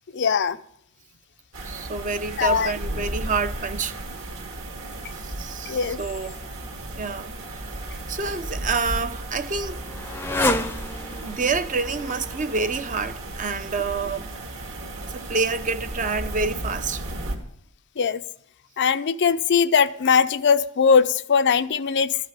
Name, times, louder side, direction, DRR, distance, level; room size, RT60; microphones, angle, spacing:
voice 1, 0.1-0.6 2.4-2.7 5.7-6.0 18.0-18.2 18.8-22.2, left 6 dB, 55° left, 0.5 m, -20 dB
sound 1, 1.5-17.4, right 1 dB, 60° right, 2.4 m, -34 dB
voice 2, 1.6-4.0 5.2-6.4 6.8-7.6 8.1-9.8 11.2-14.3 15.1-17.0, right 4 dB, 35° right, 0.7 m, -28 dB
Motorcycle, 8.3-13.7, left 1 dB, 10° left, 0.6 m, -31 dB
13.0 x 6.1 x 9.6 m
head